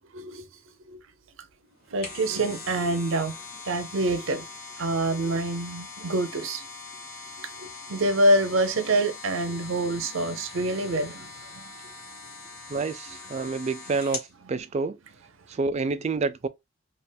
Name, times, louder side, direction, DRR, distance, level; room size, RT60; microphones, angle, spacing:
voice 1, 0.1-0.4 0.9-1.0 1.9-3.4 3.6-4.4 4.8-6.6 7.4-11.7 14.5-14.6, right 1 dB, 70° right, 0.6 m, -26 dB
sound 1, 1.7-14.3 14.8-14.9, left 4 dB, 50° left, 1.4 m, -42 dB
voice 2, 12.7-15.0 15.5-16.5, right 4 dB, 30° right, 0.3 m, -28 dB
3.4 x 2.4 x 2.3 m
head